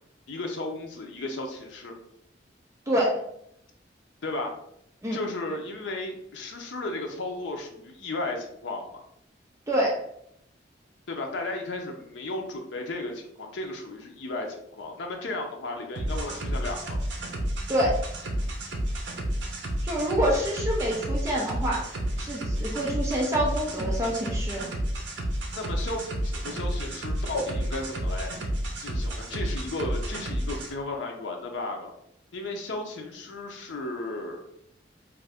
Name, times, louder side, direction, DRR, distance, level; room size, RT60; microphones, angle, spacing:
voice 1, 0.3-1.9 4.2-4.5 5.1-8.8 11.1-17.0 25.5-28.3 28.8-31.9 32.3-34.4, left 2 dB, 80° left, 2 dB, 0.5 m, -34 dB
voice 2, 2.9-3.2 5.0-5.2 9.7-10.0 17.7-18.0 19.8-21.9 22.2-24.7, equal, 15° right, -2 dB, 0.5 m, -26 dB
sound 1, 16.0-30.7, right 1 dB, 70° right, 0.6 m, -31 dB
2.6 x 2.5 x 3.3 m, 0.73 s
head